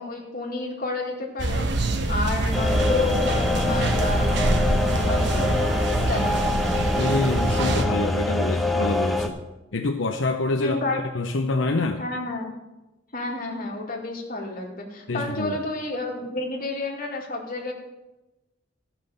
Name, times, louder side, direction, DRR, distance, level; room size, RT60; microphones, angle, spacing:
voice 1, 0.0-1.7 2.1-4.4 4.9-6.5 10.6-11.0 12.0-12.5 13.1-17.7, left 2 dB, 50° left, 0 dB, 2.2 m, -30 dB
sound 1, 1.4-7.9, right 2 dB, 60° right, 1.1 m, -25 dB
sound 2, 2.5-9.3, left 2 dB, ahead, 0.8 m, -25 dB
voice 2, 7.0-9.4 9.7-12.0 15.1-15.6, left 2 dB, 80° left, 4 dB, 0.7 m, -26 dB
13.5 x 5.9 x 6.7 m, 1.0 s
head